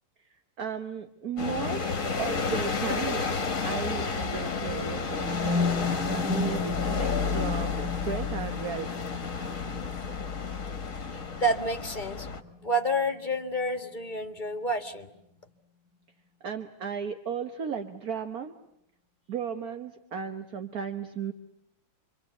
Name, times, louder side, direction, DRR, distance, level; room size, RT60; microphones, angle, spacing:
voice 1, 0.3-1.9 2.2-3.3 3.6-5.8 6.2-8.9 16.4-18.5 19.3-21.3, right 7 dB, 50° right, 7 dB, 1.7 m, -35 dB
sound 1, 1.4-12.4, left 5 dB, 45° left, 1.9 m, -31 dB
sound 2, 4.6-12.6, left 4 dB, 70° right, 7.1 m, -34 dB
voice 2, 11.4-12.3 12.6-15.1, right 1 dB, 25° left, 6 dB, 2.0 m, -29 dB
27.5 x 25.0 x 8.4 m, 0.78 s
omnidirectional pair, 2.1 m